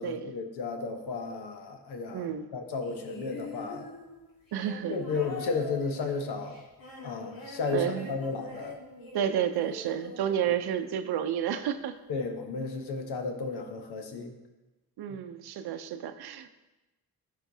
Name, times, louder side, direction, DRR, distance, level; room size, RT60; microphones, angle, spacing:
voice 1, 0.0-3.9 4.9-6.6 7.0-8.8 12.1-14.4 15.1-15.2, left 4 dB, 80° left, 5 dB, 1.0 m, -33 dB
voice 2, 2.1-2.5 4.5-5.0 7.7-8.1 9.1-12.0 15.0-16.5, right 9 dB, 70° right, 10 dB, 0.6 m, -31 dB
sound 1, 2.8-11.2 12.2-12.3, left 3 dB, 60° left, 1.8 m, -44 dB
12.5 x 4.5 x 2.7 m, 1.1 s
supercardioid pair, 55°, 39 cm